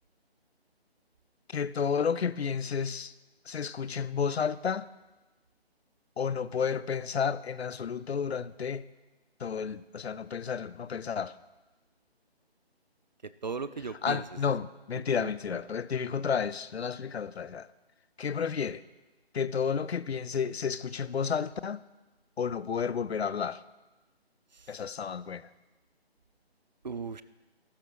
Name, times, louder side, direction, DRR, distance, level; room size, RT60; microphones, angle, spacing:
voice 1, 1.5-3.1 3.5-4.9 6.2-8.8 9.4-11.3 14.0-17.7 18.2-18.8 19.3-21.8 22.4-23.6 24.7-25.5, left 6 dB, 75° left, 0.6 m, -31 dB
voice 2, 13.2-14.2 15.2-15.6 24.5-24.7 26.8-27.2, right 5 dB, 45° right, 0.4 m, -38 dB
14.0 x 13.0 x 3.1 m
figure-of-eight pair, 155°, 32 cm